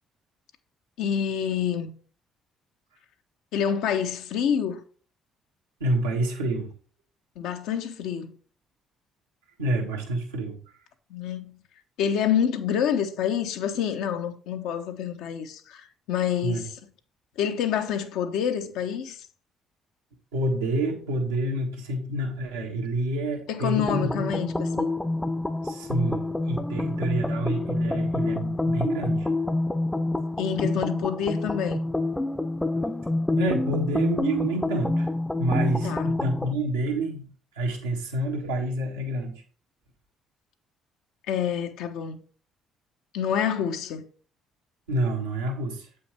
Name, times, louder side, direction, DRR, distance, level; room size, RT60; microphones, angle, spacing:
voice 1, 1.0-1.9 3.5-4.8 7.4-8.3 11.1-11.6 12.0-16.7 17.4-19.3 23.5-24.9 30.4-31.8 35.8-36.1 41.3-42.2 43.1-44.1, left 8 dB, 70° left, 0.8 m, -27 dB
voice 2, 5.8-6.7 9.6-10.6 16.4-16.6 20.3-24.1 25.6-29.3 33.3-35.1 35.4-37.2 37.5-39.4 44.9-45.9, right 1 dB, 90° right, 1.5 m, -28 dB
sound 1, 23.8-36.5, left 2 dB, 10° left, 0.6 m, -27 dB
7.8 x 5.6 x 3.4 m
hypercardioid pair, 50°, 0 cm